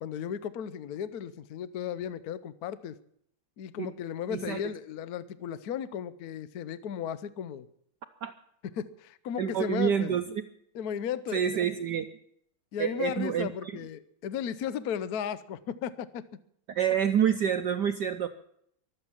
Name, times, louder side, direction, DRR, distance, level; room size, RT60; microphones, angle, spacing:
voice 1, 0.0-3.0 3.6-7.7 8.7-10.1 10.7-11.6 12.7-16.2, left 8 dB, 60° left, 15 dB, 1.0 m, -35 dB
voice 2, 4.3-4.6 8.2-8.3 9.4-10.3 11.3-12.1 12.8-13.5 16.7-18.3, right 8 dB, 65° right, 8 dB, 1.1 m, -27 dB
23.5 x 8.1 x 7.3 m, 0.70 s
omnidirectional pair, 2.4 m